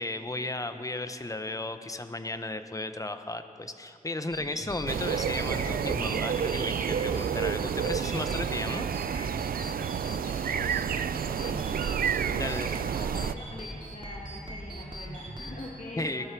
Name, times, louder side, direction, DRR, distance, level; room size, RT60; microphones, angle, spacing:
voice 1, 0.0-8.9 12.4-12.7 16.0-16.3, left 2 dB, 20° left, 9 dB, 0.8 m, -34 dB
sound 1, 4.3-15.7, right 1 dB, 35° right, 2.4 m, -41 dB
sound 2, 4.9-13.3, right 8 dB, 80° right, 0.4 m, -30 dB
voice 2, 10.2-16.3, left 2 dB, 55° left, -3 dB, 1.7 m, -44 dB
19.0 x 12.0 x 4.6 m, 2.5 s
wide cardioid pair, 70°, 15 cm